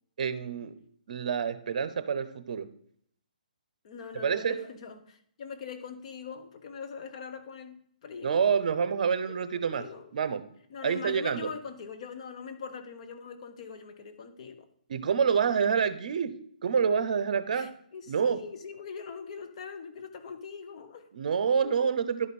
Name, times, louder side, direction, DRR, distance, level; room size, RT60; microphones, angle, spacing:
voice 1, 0.2-0.7 1.1-2.7 4.1-4.7 8.2-9.8 10.1-10.4 10.8-11.5 14.9-16.3 16.6-17.7 18.1-18.4 21.1-22.3, right 6 dB, 60° right, 0.8 m, -27 dB
voice 2, 3.8-8.5 9.3-10.1 10.7-14.7 17.5-21.1 21.6-22.0, left 6 dB, 45° left, 1.0 m, -42 dB
11.0 x 5.2 x 4.2 m
hypercardioid pair, 155°, 5 cm